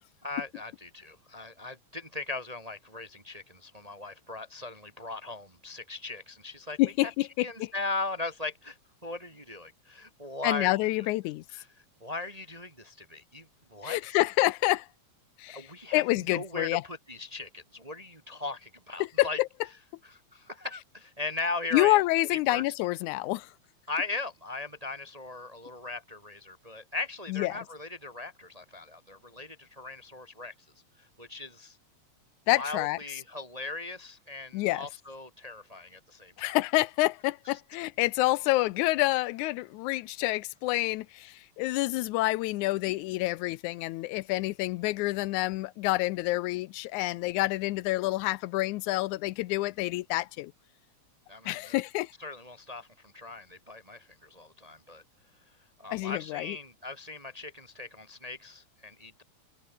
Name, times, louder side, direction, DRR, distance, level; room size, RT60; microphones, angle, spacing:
voice 1, 0.2-6.8 7.4-8.8 9.0-11.1 11.5-11.7 12.0-14.2 15.5-16.0 16.3-19.4 20.0-22.0 22.3-22.6 23.9-30.5 31.0-31.8 32.5-36.6 51.3-51.7 52.2-55.0 55.8-59.2, left 3 dB, 20° right, 1.1 m, -38 dB
voice 2, 6.8-7.7 10.4-11.4 13.8-14.9 15.4-15.7 15.9-16.8 19.2-19.5 21.7-23.5 27.3-27.6 32.5-33.0 34.5-34.9 36.4-50.5 51.5-52.1 55.9-56.6, left 19 dB, 90° left, 2.1 m, -28 dB
omnidirectional pair, 3.4 m